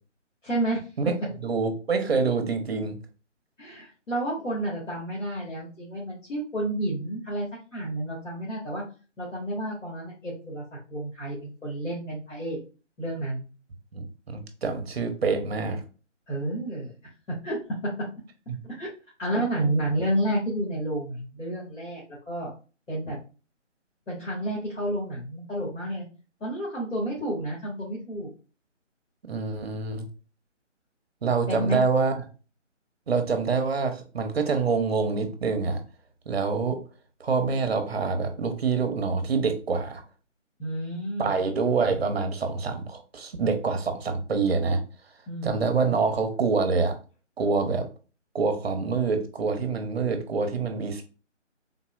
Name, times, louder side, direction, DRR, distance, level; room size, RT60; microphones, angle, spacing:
voice 1, 0.4-0.9 3.6-7.5 7.7-8.8 9.2-10.6 10.9-12.6 13.0-13.4 16.3-16.9 17.3-17.6 17.8-17.9 18.7-18.9 19.2-22.5 22.9-23.2 24.1-26.0 26.4-28.3 31.5-31.8 40.6-41.3 45.3-45.6, right 1 dB, 85° left, -6 dB, 1.6 m, -30 dB
voice 2, 1.4-3.0 13.9-15.8 18.5-18.6 19.6-19.7 29.3-30.1 31.2-32.2 33.1-35.8 36.3-36.8 37.2-40.0 41.2-44.8 45.4-47.0 47.4-47.9 48.3-51.0, right 4 dB, 55° right, 7 dB, 0.7 m, -26 dB
3.7 x 2.0 x 2.4 m, 0.34 s
figure-of-eight pair, 155°, 37 cm